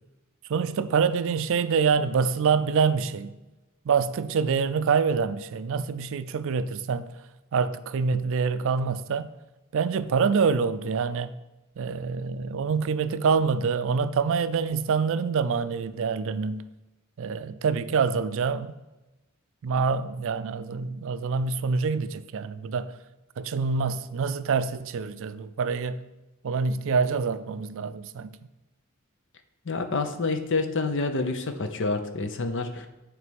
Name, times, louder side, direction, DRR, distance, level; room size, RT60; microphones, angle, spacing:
voice 1, 0.5-3.3 3.9-7.1 7.5-9.3 9.7-11.3 11.8-16.7 17.2-18.8 19.6-23.0 23.4-26.0 26.4-28.4, right 5 dB, 65° right, 0.4 m, -26 dB
voice 2, 29.7-32.9, left 3 dB, 60° left, 0.7 m, -28 dB
9.5 x 3.3 x 5.2 m
head